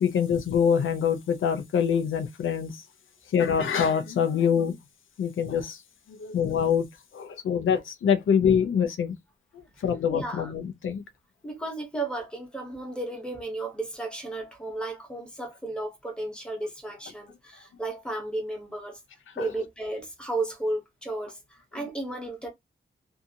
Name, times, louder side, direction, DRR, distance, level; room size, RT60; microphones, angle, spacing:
voice 1, 0.0-2.8 3.3-4.7 5.2-5.8 6.1-6.9 7.1-9.1 9.8-11.0 19.4-19.5, left 7 dB, 90° left, 0.5 m, -25 dB
voice 2, 9.8-10.5 11.4-19.0 19.3-22.5, right 2 dB, 5° left, 0.9 m, -34 dB
2.7 x 2.4 x 2.7 m
wide cardioid pair, 170°, 20 cm